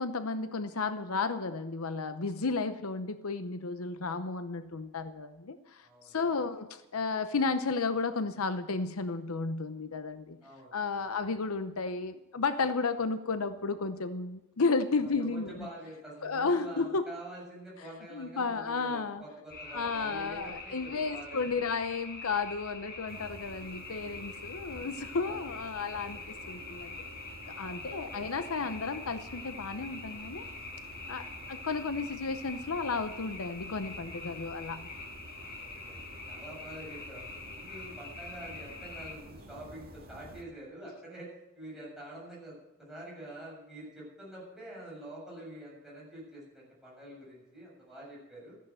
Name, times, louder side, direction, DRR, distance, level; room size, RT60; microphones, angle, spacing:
voice 1, 0.0-10.4 10.7-15.7 16.2-17.1 18.1-19.2 19.7-27.0 27.5-30.4 31.1-34.9, left 4 dB, 70° left, 10 dB, 0.8 m, -33 dB
voice 2, 10.4-11.1 15.2-21.4 25.1-25.5 27.8-28.3 35.6-48.5, right 1 dB, ahead, -6 dB, 7.5 m, -47 dB
sound 1, 19.5-39.1, left 3 dB, 45° left, 5.1 m, -45 dB
sound 2, 23.1-40.4, right 1 dB, 45° right, 1.8 m, -50 dB
15.0 x 10.5 x 7.6 m, 0.97 s
head